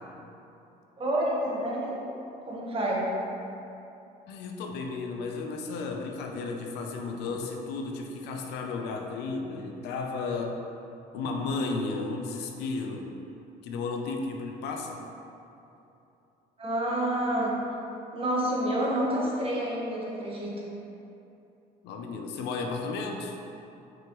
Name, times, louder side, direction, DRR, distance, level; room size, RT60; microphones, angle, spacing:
voice 1, 1.0-1.9 2.5-3.1 16.6-17.6 18.1-20.5, right 1 dB, 35° right, -4 dB, 1.4 m, -28 dB
voice 2, 4.3-10.6 11.1-13.1 13.6-15.0 21.8-23.4, left 3 dB, 90° left, 3 dB, 0.7 m, -33 dB
6.1 x 5.3 x 3.1 m, 2.8 s
cardioid pair, 110°, 17 cm